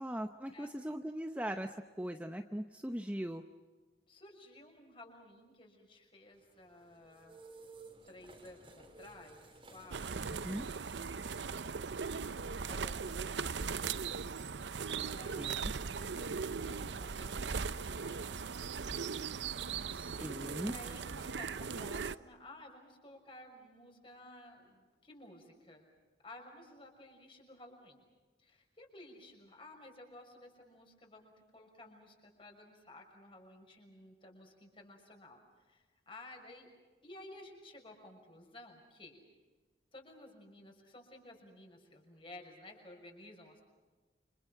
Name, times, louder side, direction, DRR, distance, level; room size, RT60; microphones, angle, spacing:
voice 1, 0.0-3.4 10.4-10.7 15.4-15.7 19.9-20.7, equal, 10° right, 6 dB, 0.8 m, -40 dB
voice 2, 4.1-7.4 8.0-10.6 10.9-11.9 12.6-13.7 15.0-18.5 20.6-25.9 26.2-28.0 28.4-36.7 37.0-39.2 39.9-43.6, left 1 dB, 30° left, 2 dB, 6.1 m, -55 dB
sound 1, 6.3-17.8, right 3 dB, 30° right, 3.6 m, -60 dB
sound 2, 9.9-22.2, right 5 dB, 90° right, 0.7 m, -39 dB
29.5 x 26.5 x 5.9 m, 1.3 s
head